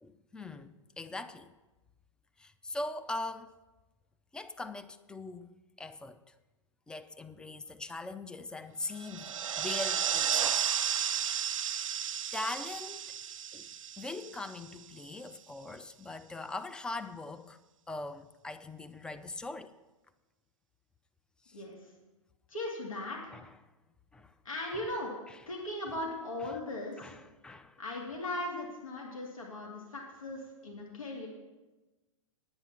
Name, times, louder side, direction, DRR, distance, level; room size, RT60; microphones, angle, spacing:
voice 1, 0.0-1.5 2.4-3.5 4.3-6.3 6.9-10.7 12.3-13.1 13.5-13.7 14.0-17.6 17.9-19.7 21.4-21.6 23.3-23.6 24.1-24.3 24.7-24.9 25.3-25.4 26.4-26.5 27.0-27.8, left 2 dB, 5° left, 0.4 m, -41 dB
sound 1, 9.0-14.8, right 8 dB, 80° right, 0.5 m, -33 dB
voice 2, 22.5-23.3 24.4-25.1 25.5-27.1 27.8-31.3, left 1 dB, 85° left, 2.5 m, -38 dB
9.6 x 9.6 x 5.9 m
hypercardioid pair, 120°, 17 cm